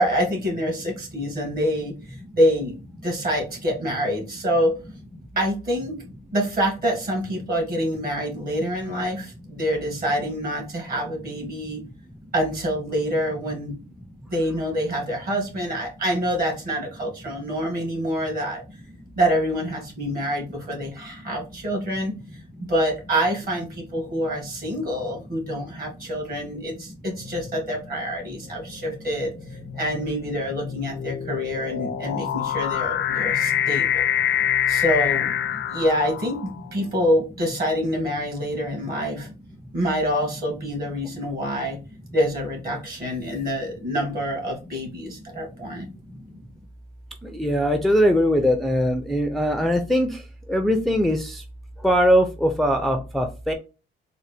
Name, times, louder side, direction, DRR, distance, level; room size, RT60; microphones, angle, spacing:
voice 1, 0.0-1.9 2.3-2.8 3.0-4.7 5.4-6.0 6.3-11.8 12.3-13.8 14.3-18.6 19.2-22.2 22.6-29.3 29.7-34.0 34.7-35.3 35.7-39.3 39.7-41.8 42.1-45.9, equal, 50° right, 2 dB, 2.0 m, -26 dB
Synth Swell, 27.2-27.6 28.4-36.7, left 10 dB, 65° left, 0.5 m, -26 dB
voice 2, 47.4-50.1 50.5-51.4 51.8-53.5, equal, ahead, 5 dB, 0.4 m, -21 dB
3.8 x 2.1 x 3.3 m, 0.32 s
cardioid pair, 90°, 20 cm